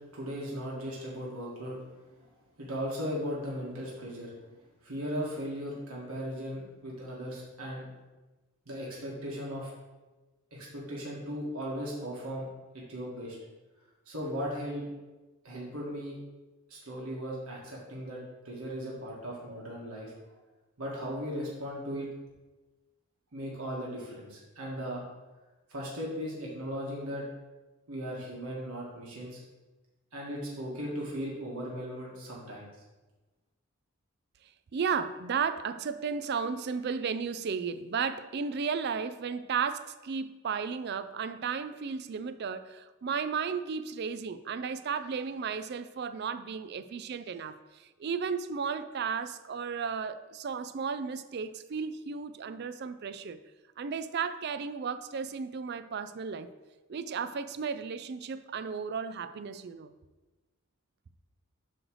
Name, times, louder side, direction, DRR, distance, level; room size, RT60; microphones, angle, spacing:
voice 1, 0.1-1.8 2.6-4.3 4.8-7.9 8.7-9.7 10.5-12.5 12.7-13.4 14.1-14.9 15.4-16.2 16.7-18.2 18.4-20.1 20.8-22.1 23.3-25.0 25.7-27.2 27.9-29.4 30.1-32.7, equal, 80° right, 1.6 m, -37 dB
voice 2, 34.7-53.4 53.8-56.5 56.9-59.9, right 6 dB, 50° right, 0.3 m, -34 dB
7.8 x 3.2 x 6.2 m
head